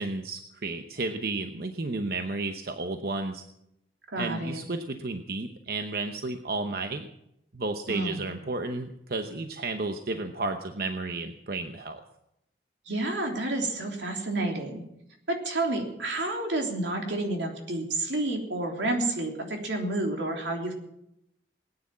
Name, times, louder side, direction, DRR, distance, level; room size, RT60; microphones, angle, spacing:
voice 1, 0.0-3.4 4.2-7.1 7.5-12.0, right 3 dB, 55° right, 6 dB, 0.9 m, -32 dB
voice 2, 4.1-4.6 7.9-8.3 12.9-14.8 15.3-20.7, right 2 dB, 80° right, 2 dB, 3.4 m, -30 dB
19.5 x 9.8 x 7.4 m, 0.82 s
head